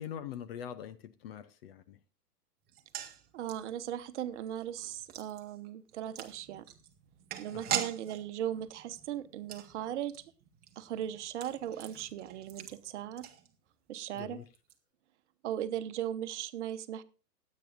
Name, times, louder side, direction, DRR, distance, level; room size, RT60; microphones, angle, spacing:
voice 1, 0.0-2.0 7.5-7.8 14.1-14.5, left 9 dB, 40° left, 0.7 m, -43 dB
sound 1, 2.7-13.9 14.2-14.3 14.5-14.7, right 10 dB, 20° right, 1.1 m, -43 dB
voice 2, 3.3-6.6 7.4-10.1 10.8-13.3 13.9-14.4 15.4-17.0, right 11 dB, 45° right, 1.1 m, -38 dB
20.0 x 8.5 x 2.6 m
figure-of-eight pair, 120°, 47 cm